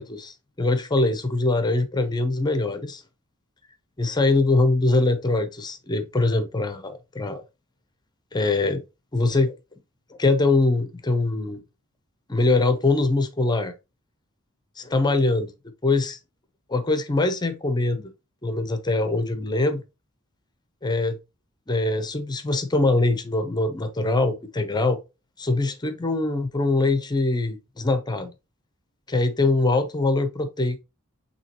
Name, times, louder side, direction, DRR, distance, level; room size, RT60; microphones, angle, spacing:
voice 1, 0.0-3.0 4.0-7.4 8.3-8.8 9.1-9.6 10.2-11.6 12.3-13.7 14.8-15.5 15.8-16.2 16.7-18.1 18.4-19.8 20.8-21.2 21.7-25.0 25.4-28.3 29.1-30.8, left 2 dB, 20° left, 0.6 m, -23 dB
6.1 x 2.8 x 2.9 m
head